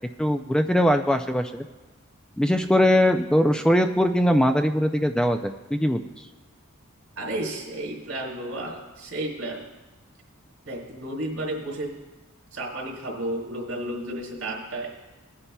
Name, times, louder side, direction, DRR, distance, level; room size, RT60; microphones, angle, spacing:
voice 1, 0.2-1.6 2.4-6.0, equal, 5° left, 7 dB, 0.3 m, -21 dB
voice 2, 7.2-9.6 10.6-12.0 12.5-14.9, right 1 dB, 75° right, -2 dB, 3.6 m, -32 dB
19.0 x 9.7 x 2.3 m, 1.2 s
head